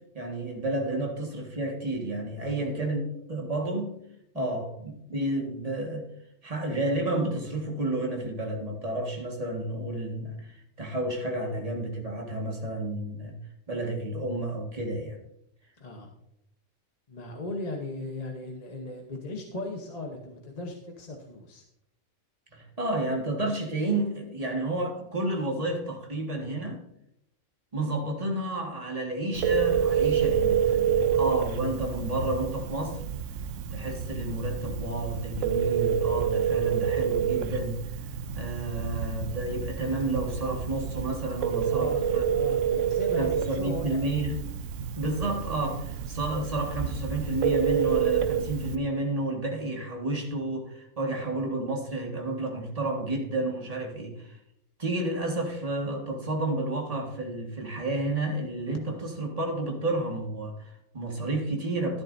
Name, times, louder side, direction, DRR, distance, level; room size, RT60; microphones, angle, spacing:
voice 1, 0.1-3.0 3.3-4.0 4.3-6.1 6.4-13.4 13.7-15.2 22.5-26.8 27.7-33.0 33.7-37.8 38.4-42.3 43.2-44.4 45.0-54.4 54.8-62.0, right 2 dB, 25° right, 1 dB, 1.7 m, -31 dB
voice 2, 2.4-2.7 4.3-4.6 15.8-16.1 17.1-21.6 41.7-44.1, left 2 dB, 30° left, 1 dB, 1.0 m, -37 dB
Telephone, 29.3-48.8, right 8 dB, 70° right, 1.0 m, -28 dB
12.5 x 10.5 x 2.7 m, 0.80 s
omnidirectional pair, 1.5 m